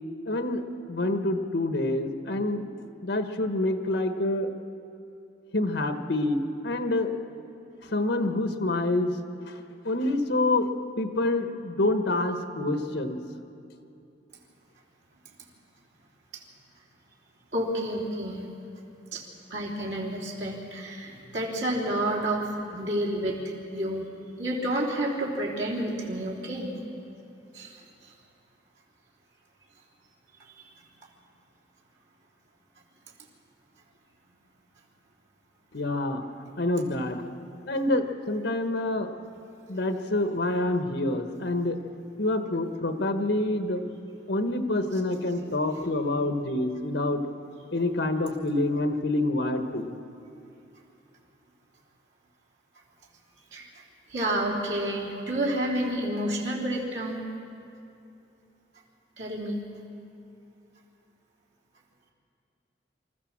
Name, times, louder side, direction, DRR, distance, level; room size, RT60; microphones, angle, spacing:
voice 1, 0.3-2.7 3.0-4.5 5.5-7.2 7.9-9.1 9.5-9.6 9.8-10.7 11.0-13.2 35.7-36.2 36.6-37.2 37.7-39.1 39.7-41.8 42.2-43.8 44.3-47.2 47.7-49.9, left 2 dB, 75° left, 7 dB, 1.2 m, -27 dB
voice 2, 17.5-18.5 19.1-19.2 19.5-24.1 24.4-26.7 27.5-28.1 53.5-53.7 54.1-57.2 59.2-59.6, right 1 dB, 85° right, -3 dB, 3.5 m, -30 dB
26.0 x 14.0 x 7.4 m, 2.6 s
head